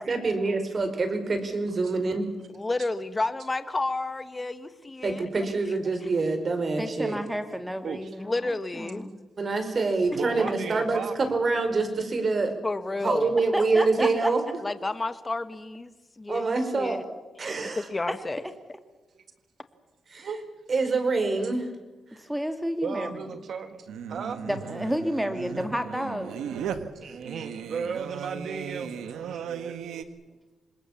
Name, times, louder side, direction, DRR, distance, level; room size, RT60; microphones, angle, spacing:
voice 1, 0.1-2.3 5.0-7.2 9.4-12.5 13.0-14.4 16.3-17.0 17.4-17.9 20.1-20.3 20.7-21.7, right 3 dB, 45° right, 7 dB, 5.0 m, -26 dB
voice 2, 2.5-5.3 8.2-9.1 12.6-13.3 14.6-17.0 17.8-18.4, left 2 dB, 25° left, 11 dB, 1.6 m, -31 dB
voice 3, 6.8-8.4 8.8-9.2 13.5-14.3 22.2-23.4 24.5-26.3, equal, 5° right, 7 dB, 2.2 m, -31 dB
voice 4, 10.1-11.3 19.2-19.3 20.2-20.4 22.8-23.7 24.1-24.4 27.0-28.9 29.2-29.7, right 6 dB, 65° right, 8 dB, 1.8 m, -35 dB
Singing, 23.9-30.0, right 8 dB, 90° right, 1.4 m, -37 dB
26.0 x 21.0 x 7.3 m, 1.2 s
cardioid pair, 80°, 0 cm